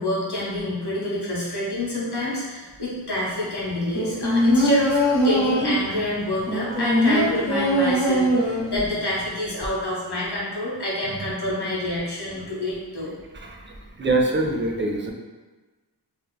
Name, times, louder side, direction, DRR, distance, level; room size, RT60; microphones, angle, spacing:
voice 1, 0.0-13.1, left 1 dB, 65° left, -6 dB, 1.0 m, -27 dB
sound 1, 3.9-5.9 6.5-8.9 9.2-9.3, equal, 45° left, 1.1 m, -21 dB
voice 2, 6.7-7.0 13.4-15.1, right 2 dB, 30° right, 1 dB, 0.4 m, -25 dB
3.2 x 2.4 x 2.2 m, 1.3 s
wide cardioid pair, 45°, 42 cm